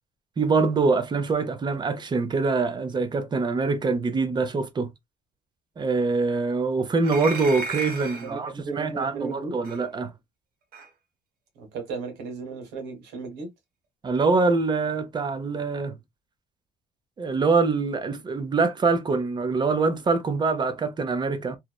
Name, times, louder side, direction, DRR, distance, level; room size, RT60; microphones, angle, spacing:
voice 1, 0.4-4.9 5.8-10.1 14.0-15.9 17.2-21.6, right 4 dB, 25° right, 0.6 m, -24 dB
sound 1, 7.0-8.3 9.6-9.8 10.7-10.9, right 3 dB, 65° right, 1.0 m, -34 dB
voice 2, 8.2-9.6 11.5-13.5, right 4 dB, 90° right, 1.3 m, -35 dB
3.0 x 2.1 x 2.2 m
cardioid pair, 110°, 17 cm